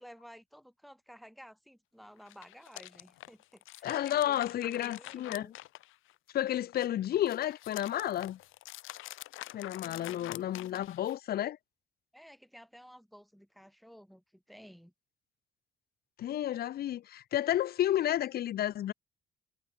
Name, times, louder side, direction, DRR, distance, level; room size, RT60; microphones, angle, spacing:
voice 1, 0.0-4.4 4.7-5.5 12.1-14.9, equal, ahead, 7.2 m, -54 dB
Pages Rolling, 2.2-6.3 6.7-11.3, left 16 dB, 85° left, 1.0 m, -47 dB
voice 2, 3.8-5.5 6.3-8.4 9.5-11.6 16.2-18.9, left 12 dB, 50° left, 0.4 m, -31 dB
cardioid pair, 90°, 20 cm